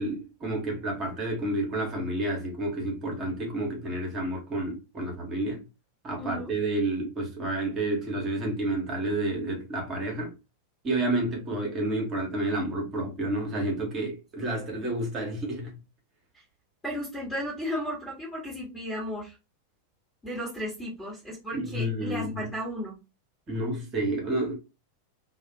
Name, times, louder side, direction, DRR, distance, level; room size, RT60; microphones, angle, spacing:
voice 1, 0.0-5.6 6.0-10.3 10.8-15.8 21.5-22.5 23.5-24.5, right 1 dB, 30° right, 0.9 m, -30 dB
voice 2, 6.2-6.5 14.4-14.5 16.8-19.3 20.2-23.0, equal, 15° left, 1.2 m, -34 dB
2.3 x 2.1 x 2.7 m
figure-of-eight pair, 90°, 0 cm